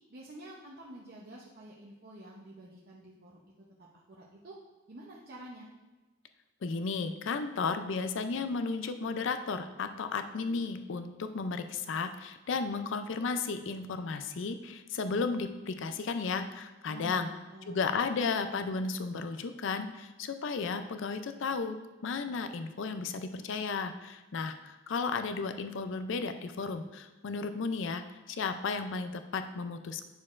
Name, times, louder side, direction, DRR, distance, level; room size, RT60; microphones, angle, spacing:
voice 1, 0.1-3.4 3.8-4.6 4.9-5.7 16.9-17.8, right 1 dB, 45° right, -4 dB, 0.7 m, -48 dB
voice 2, 6.6-17.3 17.7-21.8 22.0-30.0, left 4 dB, 60° left, 9 dB, 0.4 m, -34 dB
9.5 x 6.4 x 2.5 m, 1.1 s
head